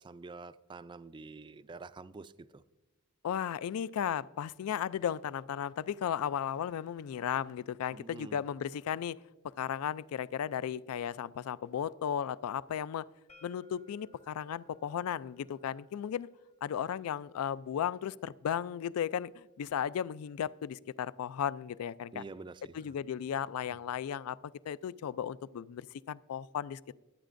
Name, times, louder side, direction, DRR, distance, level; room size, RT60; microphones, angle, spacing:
voice 1, 0.0-2.6 7.9-8.4 22.1-22.9, right 3 dB, 20° right, 14 dB, 0.3 m, -47 dB
voice 2, 3.2-9.2 9.6-13.1 13.4-16.3 16.6-22.2 22.7-24.4 24.7-26.9, left 9 dB, 75° left, 19 dB, 0.3 m, -35 dB
sound 1, 13.3-19.1, left 2 dB, 30° left, 0.8 m, -65 dB
21.0 x 9.0 x 2.5 m, 1.1 s
head